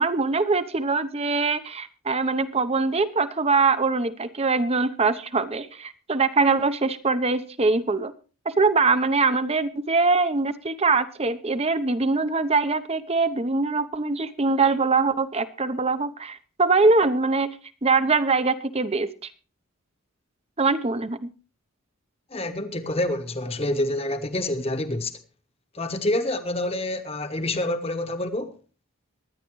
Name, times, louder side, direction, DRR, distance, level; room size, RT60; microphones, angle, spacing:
voice 1, 0.0-8.1 8.5-17.5 17.8-19.1 20.6-21.3, right 3 dB, 30° right, 0.8 m, -23 dB
voice 2, 22.3-25.1 25.7-28.6, left 1 dB, 25° left, 1.2 m, -27 dB
22.5 x 10.0 x 3.1 m
head